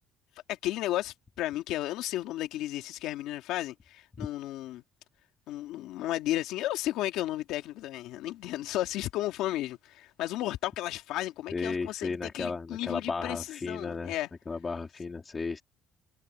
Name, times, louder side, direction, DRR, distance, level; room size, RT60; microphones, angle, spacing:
voice 1, 0.5-4.8 5.5-14.3, left 15 dB, 85° left, 2.4 m, -33 dB
voice 2, 11.5-14.1 14.5-15.6, left 4 dB, 20° left, 2.2 m, -34 dB
open air
cardioid pair, 165°, 0 cm